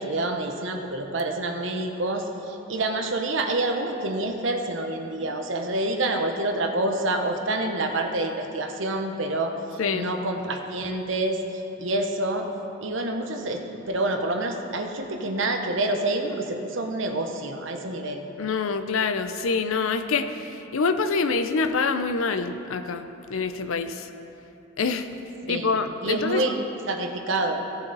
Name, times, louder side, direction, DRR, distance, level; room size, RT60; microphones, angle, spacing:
voice 1, 0.0-11.4 11.8-12.5 12.8-18.2 25.5-26.5 26.9-27.6, right 2 dB, 70° right, 4 dB, 0.9 m, -27 dB
voice 2, 18.4-24.1 24.8-25.1 25.5-26.4, left 4 dB, 85° left, 9 dB, 0.6 m, -26 dB
15.5 x 7.0 x 4.0 m, 3.0 s
head